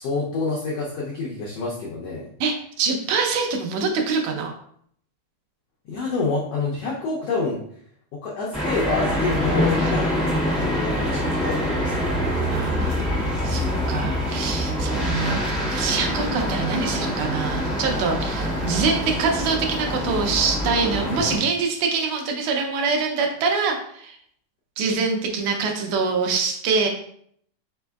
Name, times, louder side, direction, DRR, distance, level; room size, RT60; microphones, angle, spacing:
voice 1, 0.0-2.3 5.9-7.6 8.1-12.5 12.8-13.0 15.1-15.4 21.1-21.4, left 3 dB, 80° left, -4 dB, 1.4 m, -28 dB
voice 2, 2.4-4.5 12.5-13.1 13.4-24.2 24.8-26.9, right 4 dB, 80° right, 2 dB, 1.9 m, -25 dB
sound 1, 8.5-21.4, equal, ahead, 0.6 m, -25 dB
5.1 x 4.3 x 2.3 m, 0.65 s
omnidirectional pair, 3.6 m